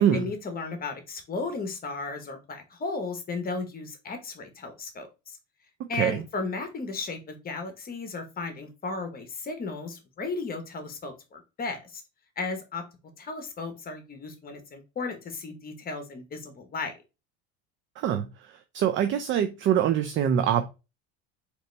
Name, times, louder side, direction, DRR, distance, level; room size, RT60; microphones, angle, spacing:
voice 1, 0.1-5.1 5.9-12.0 12.4-12.8 13.2-16.9, left 3 dB, 25° left, 1.0 m, -35 dB
voice 2, 5.8-6.2 18.0-20.7, right 9 dB, 40° right, 0.5 m, -25 dB
3.8 x 3.0 x 3.2 m
supercardioid pair, 115°, 33 cm